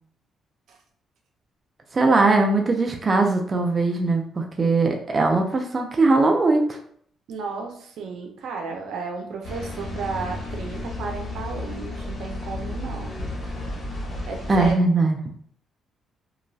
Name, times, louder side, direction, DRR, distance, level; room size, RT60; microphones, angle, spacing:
voice 1, 1.9-6.8 14.5-15.2, right 3 dB, 35° right, 2 dB, 0.4 m, -20 dB
voice 2, 7.3-13.1 14.3-14.7, right 4 dB, 75° right, 2 dB, 0.6 m, -33 dB
sound 1, 9.4-14.7, left 2 dB, 35° left, 1.1 m, -33 dB
2.9 x 2.3 x 2.6 m, 0.62 s
cardioid pair, 90°, 0 cm